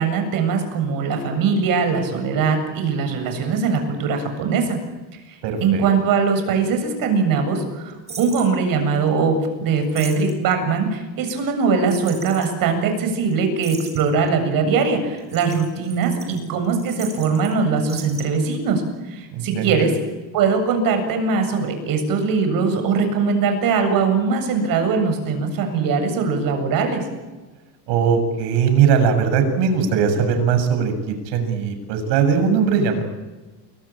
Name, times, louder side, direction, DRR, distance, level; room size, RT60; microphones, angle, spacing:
voice 1, 0.0-4.8 5.3-18.8 19.1-19.9 20.3-27.0, right 5 dB, 50° right, 6 dB, 7.7 m, -21 dB
voice 2, 5.4-5.9 19.3-19.9 27.9-33.0, right 6 dB, 70° right, 7 dB, 7.3 m, -20 dB
sound 1, 8.1-8.5 9.8-10.5 11.9-12.5 12.9-13.0 13.2-13.3 13.6-14.3 15.2-17.5 17.8-18.2, right 4 dB, 15° right, 4.9 m, -38 dB
29.5 x 22.0 x 9.0 m, 1.2 s
cardioid pair, 160°, 43 cm